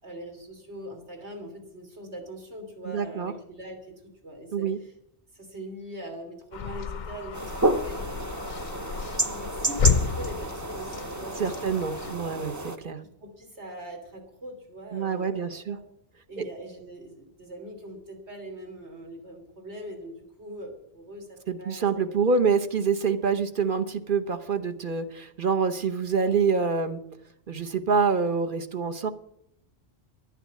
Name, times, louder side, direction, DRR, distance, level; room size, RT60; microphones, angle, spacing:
voice 1, 0.0-3.9 4.2-4.9 5.3-8.1 9.2-11.7 13.0-15.8 16.3-21.8, equal, 85° right, 2 dB, 3.4 m, -42 dB
voice 2, 2.8-3.3 4.5-4.8 11.4-13.0 14.9-15.8 16.4-16.5 21.5-27.0 27.5-29.1, right 5 dB, 50° right, 8 dB, 1.2 m, -26 dB
sound 1, 6.5-12.2, left 6 dB, 50° left, 0.7 m, -31 dB
sound 2, 7.3-12.8, right 2 dB, 20° right, 0.6 m, -30 dB
11.5 x 9.8 x 8.4 m, 0.76 s
omnidirectional pair, 1.1 m